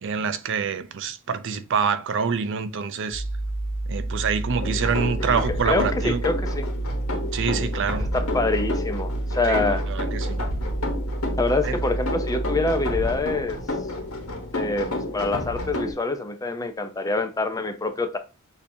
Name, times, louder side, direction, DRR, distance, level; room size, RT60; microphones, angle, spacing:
voice 1, 0.0-3.2 3.9-6.2 7.3-8.1 9.5-10.4 11.6-11.8, right 6 dB, 60° right, 0.5 m, -26 dB
sound 1, 3.1-13.1, right 2 dB, 35° left, 1.7 m, -29 dB
sound 2, 4.6-15.9, left 2 dB, 85° left, 1.3 m, -31 dB
voice 2, 5.2-6.7 8.1-9.8 11.4-13.6 14.5-18.2, left 2 dB, 15° left, 0.5 m, -26 dB
6.7 x 2.8 x 2.7 m
head